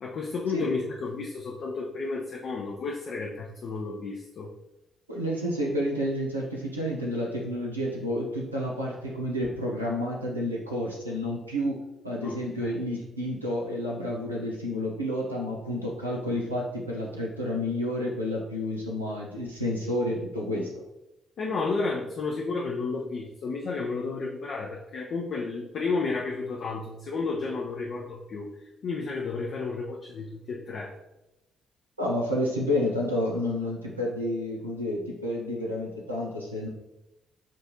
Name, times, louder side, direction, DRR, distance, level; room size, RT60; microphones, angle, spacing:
voice 1, 0.0-4.5 12.2-12.7 20.1-20.2 20.5-20.7 21.4-28.5 28.8-30.9, left 4 dB, 55° left, -2 dB, 0.5 m, -32 dB
voice 2, 5.1-20.7 32.0-36.7, left 1 dB, 90° right, -3 dB, 0.5 m, -30 dB
7.4 x 2.6 x 2.7 m, 0.93 s
figure-of-eight pair, 40°, 0 cm